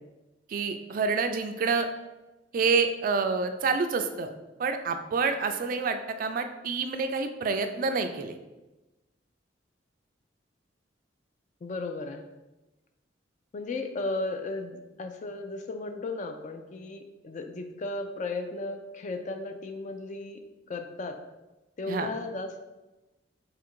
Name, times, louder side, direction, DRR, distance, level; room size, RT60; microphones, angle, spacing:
voice 1, 0.5-1.9 2.5-4.3 4.6-8.4 21.9-22.1, right 4 dB, 45° right, 7 dB, 0.3 m, -28 dB
voice 2, 11.6-12.3 13.5-20.4 20.7-21.2 21.8-22.6, left 2 dB, 40° left, 6 dB, 0.3 m, -35 dB
3.8 x 2.5 x 4.4 m, 1.1 s
head